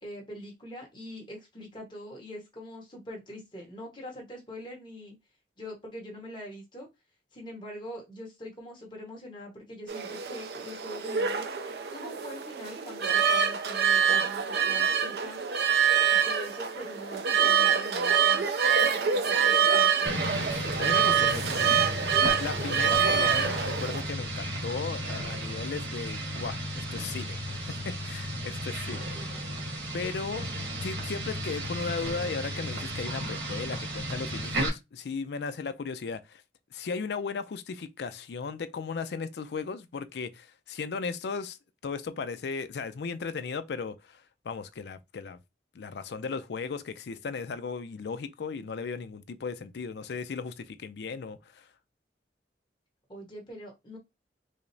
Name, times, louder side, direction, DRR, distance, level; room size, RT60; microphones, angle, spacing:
voice 1, 0.0-5.1 5.6-6.9 7.3-11.5 11.9-15.4 16.1-18.4 18.8-20.2 28.9-29.6 53.1-54.0, equal, 25° left, 1.2 m, -43 dB
sound 1, 9.9-24.0, right 7 dB, 65° right, 0.4 m, -25 dB
sound 2, 20.1-34.7, equal, 85° right, 1.3 m, -34 dB
voice 2, 20.8-21.6 22.2-27.4 27.6-29.1 29.9-30.5 30.8-36.4 36.7-41.6 41.8-45.4 45.7-51.7, left 5 dB, 70° left, 0.4 m, -36 dB
4.8 x 2.1 x 2.6 m
head